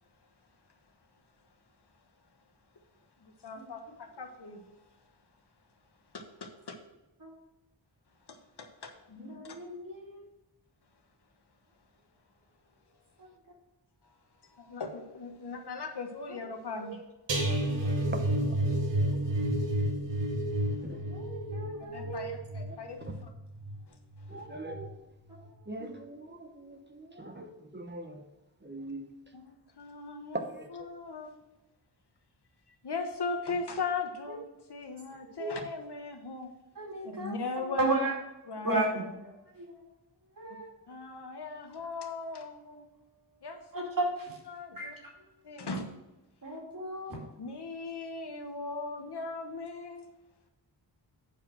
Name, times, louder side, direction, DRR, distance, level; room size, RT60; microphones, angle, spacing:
voice 1, 3.2-4.6 6.1-6.7 8.3-9.6 14.5-17.0 21.9-23.3 29.3-30.4 30.7-31.3 32.8-36.5 37.0-38.0 38.4-39.1 40.9-42.6 43.4-43.9 44.5-45.0 45.4-45.9 47.4-50.1, left 4 dB, 60° left, 5 dB, 1.3 m, -39 dB
voice 2, 9.2-10.2 21.1-22.4 34.3-34.4 35.4-35.5 36.8-37.4 37.8-38.1 38.6-39.0 39.6-39.7 40.4-40.7 42.7-42.8 43.7-44.3 44.8-44.9 46.4-47.2, right 2 dB, 45° right, -2 dB, 2.5 m, -33 dB
sound 1, 17.3-24.4 24.7-25.0 25.4-25.5, right 1 dB, 70° right, 1.6 m, -31 dB
voice 3, 17.8-18.2 20.8-21.2 24.3-25.0 25.7-28.2 28.6-29.1 30.3-30.9, right 2 dB, 25° right, 4 dB, 1.0 m, -41 dB
8.4 x 4.9 x 6.1 m, 0.98 s
wide cardioid pair, 105°, 45 cm